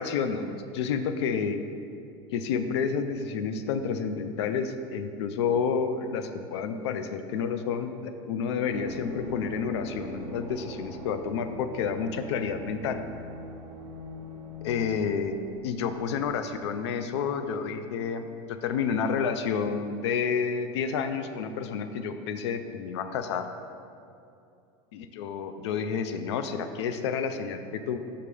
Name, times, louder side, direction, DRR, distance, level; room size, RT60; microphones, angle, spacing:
voice 1, 0.0-1.6 2.3-13.0 14.6-15.3 15.6-23.5 24.9-28.0, left 6 dB, 85° left, 9 dB, 0.4 m, -30 dB
sound 1, 8.6-17.1 17.4-17.5, equal, 30° right, 0.8 m, -42 dB
5.5 x 3.4 x 5.2 m, 2.6 s
supercardioid pair, 125°, 14 cm